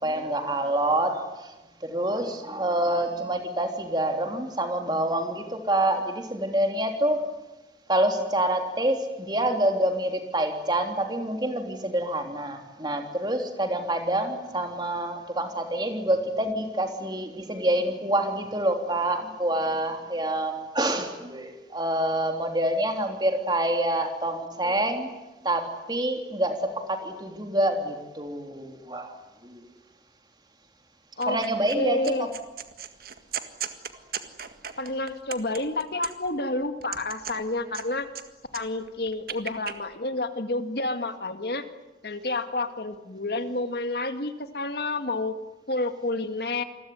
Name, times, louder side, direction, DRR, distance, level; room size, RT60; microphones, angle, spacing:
voice 1, 0.0-1.5 1.8-7.2 7.9-25.1 25.4-29.2 29.4-29.6 31.3-32.3, right 1 dB, 25° right, 4 dB, 3.4 m, -27 dB
sound 1, 31.2-31.8 32.0-36.4 36.8-38.2 38.5-39.8, right 8 dB, 55° right, 1.9 m, -37 dB
voice 2, 31.7-32.3 34.8-38.1 38.5-41.6 42.0-45.4 45.7-46.6, left 2 dB, 60° left, 8 dB, 2.1 m, -29 dB
28.0 x 21.5 x 9.6 m, 1.1 s
head